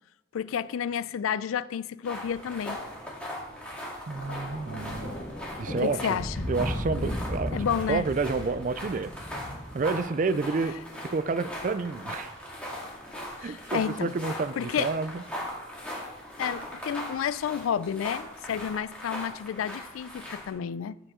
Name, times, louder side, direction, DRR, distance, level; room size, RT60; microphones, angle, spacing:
voice 1, 0.3-2.8 5.8-6.5 7.5-8.1 13.4-14.1 14.6-14.9 16.4-21.0, left 8 dB, 85° left, 0.3 m, -30 dB
sound 1, 2.0-20.5, equal, 5° left, 2.0 m, -40 dB
Thunder, 4.1-10.5 11.4-11.7, equal, 70° left, 3.2 m, -36 dB
voice 2, 4.1-5.2 5.6-6.2 6.5-9.1 9.7-10.8 11.0-12.4 13.4-15.1, right 4 dB, 40° right, 0.3 m, -29 dB
14.5 x 5.0 x 3.7 m
head